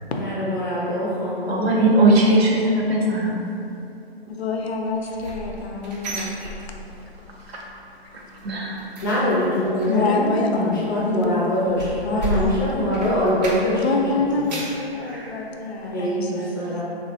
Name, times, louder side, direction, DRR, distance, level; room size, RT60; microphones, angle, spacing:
voice 1, 0.2-2.0 9.0-14.6 15.9-16.8, left 1 dB, 20° left, -8 dB, 0.4 m, -23 dB
voice 2, 1.5-3.4 7.5-7.6 8.1-8.8 15.0-15.3, right 2 dB, 75° right, -2 dB, 0.7 m, -20 dB
voice 3, 4.3-6.4 8.1-8.2 9.9-11.5 12.0-12.6 13.7-16.7, left 3 dB, 80° left, 2 dB, 0.5 m, -27 dB
sound 1, 4.9-7.2 7.5-7.8 8.1-13.9 14.2-14.9 15.3-15.4 15.9-16.0, equal, 45° right, 0.5 m, -33 dB
3.4 x 2.0 x 2.7 m, 2.8 s
hypercardioid pair, 150°, 31 cm